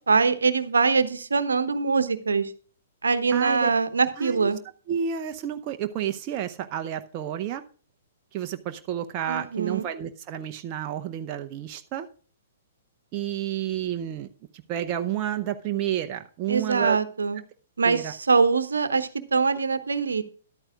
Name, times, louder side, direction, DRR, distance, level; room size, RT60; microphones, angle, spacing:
voice 1, 0.1-2.5 3.0-4.6 9.3-9.8 16.5-17.4 17.8-20.2, right 4 dB, 75° right, 12 dB, 1.0 m, -23 dB
voice 2, 3.3-3.7 4.2-4.5 4.9-7.6 8.3-12.1 13.1-14.3 14.7-17.0 17.8-18.1, right 10 dB, 35° right, 5 dB, 0.7 m, -30 dB
13.5 x 12.0 x 2.4 m, 0.41 s
figure-of-eight pair, 115°, 0 cm